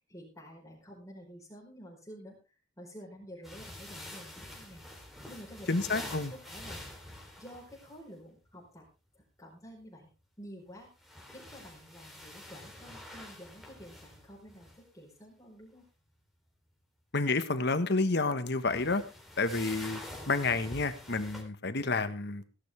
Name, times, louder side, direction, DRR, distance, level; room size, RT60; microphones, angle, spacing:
voice 1, 0.1-2.4 2.8-5.0 5.3-6.8 7.4-8.8 9.1-10.1 10.4-10.9 11.2-15.8, equal, 15° left, -4 dB, 4.6 m, -50 dB
sound 1, 3.4-8.0 10.8-14.8 18.5-21.4, left 1 dB, ahead, 3.7 m, -47 dB
voice 2, 5.7-6.3 17.1-19.0 19.4-20.0 20.3-22.4, left 3 dB, 60° left, 10 dB, 1.5 m, -29 dB
17.0 x 11.5 x 3.5 m, 0.33 s
head